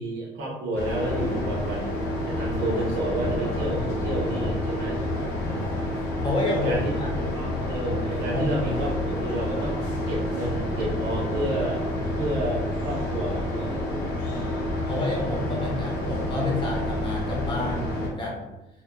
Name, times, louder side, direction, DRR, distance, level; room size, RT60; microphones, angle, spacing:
voice 1, 0.0-1.9 2.3-5.0 6.6-6.9 7.4-9.8 10.1-11.8 12.2-13.8, right 1 dB, 75° right, -3 dB, 0.9 m, -30 dB
sound 1, 0.8-18.1, left 1 dB, 75° left, 0.8 m, -29 dB
voice 2, 5.4-5.9 6.2-7.1 8.3-8.5 14.3-18.4, left 2 dB, 30° left, -3 dB, 0.8 m, -30 dB
2.6 x 2.1 x 2.3 m, 0.97 s
cardioid pair, 110°, 17 cm